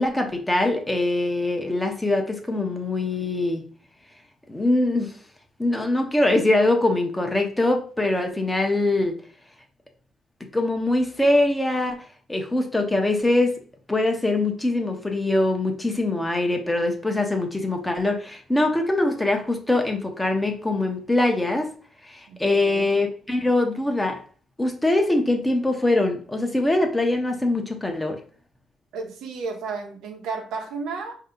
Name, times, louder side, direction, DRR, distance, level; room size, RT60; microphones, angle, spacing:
voice 1, 0.0-3.6 4.5-5.1 5.6-9.2 10.5-13.6 13.9-21.7 22.0-24.2 24.6-28.2, left 2 dB, 10° left, 3 dB, 0.9 m, -23 dB
voice 2, 22.3-23.0 28.9-31.1, right 4 dB, 85° right, 3 dB, 0.9 m, -33 dB
4.6 x 2.8 x 3.7 m, 0.42 s
cardioid pair, 90°, 0 cm